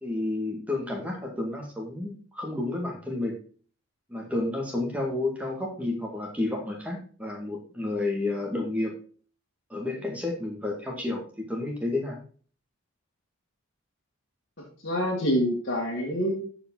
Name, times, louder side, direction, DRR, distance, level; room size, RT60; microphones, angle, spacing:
voice 1, 0.0-3.4 4.1-9.0 9.7-12.2, left 2 dB, 5° right, 1 dB, 2.1 m, -31 dB
voice 2, 14.6-16.4, equal, 50° left, -4 dB, 2.1 m, -27 dB
13.5 x 5.0 x 3.9 m, 0.42 s
head